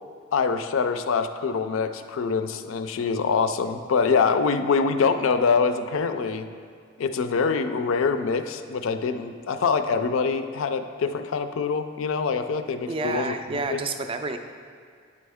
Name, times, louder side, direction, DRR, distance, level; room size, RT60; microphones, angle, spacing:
voice 1, 0.3-6.5 7.0-13.3 13.7-13.8, left 5 dB, 65° left, 9 dB, 0.4 m, -24 dB
voice 2, 12.9-14.4, right 3 dB, 25° right, 7 dB, 0.3 m, -29 dB
9.7 x 4.3 x 3.5 m, 2.1 s
head